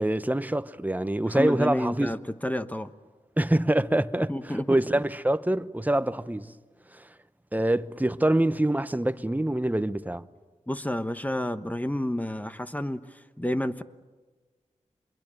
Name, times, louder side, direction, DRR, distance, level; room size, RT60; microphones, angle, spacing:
voice 1, 0.0-2.1 3.4-6.5 6.9-7.0 7.5-10.2, right 1 dB, 15° right, 1.0 m, -25 dB
voice 2, 1.3-2.9 4.3-4.8 10.7-13.0 13.4-13.8, left 1 dB, 10° left, 1.1 m, -30 dB
26.0 x 22.5 x 9.0 m
cardioid pair, 45°, 13 cm